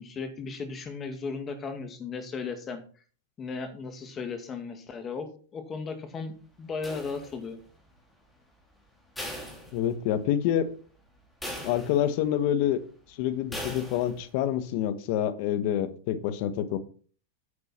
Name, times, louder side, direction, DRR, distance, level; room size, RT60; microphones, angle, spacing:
voice 1, 0.0-2.8 3.4-6.3 6.6-7.6, left 4 dB, 25° left, 7 dB, 2.0 m, -36 dB
sound 1, 6.8-7.7 9.2-10.3 10.7-10.8 11.4-12.3 13.5-14.3, equal, 5° left, 3.2 m, -39 dB
voice 2, 9.7-10.7 11.6-12.8 13.1-16.8, left 10 dB, 55° left, 12 dB, 1.2 m, -27 dB
9.8 x 6.7 x 4.3 m, 0.42 s
hypercardioid pair, 105°, 0 cm